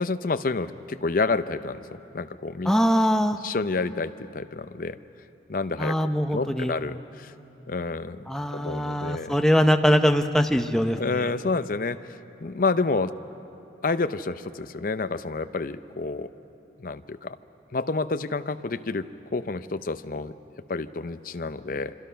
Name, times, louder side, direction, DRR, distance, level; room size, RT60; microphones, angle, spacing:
voice 1, 0.0-2.7 3.4-5.0 5.5-5.9 6.3-7.3 7.7-8.2 8.5-9.3 11.0-13.1 13.8-16.3 16.8-17.4 17.7-20.3 20.7-21.9, left 3 dB, 45° left, 11 dB, 0.6 m, -29 dB
voice 2, 2.6-3.4 5.8-6.7 8.3-11.3, equal, 5° left, 6 dB, 0.6 m, -22 dB
26.5 x 25.0 x 5.7 m, 2.9 s
head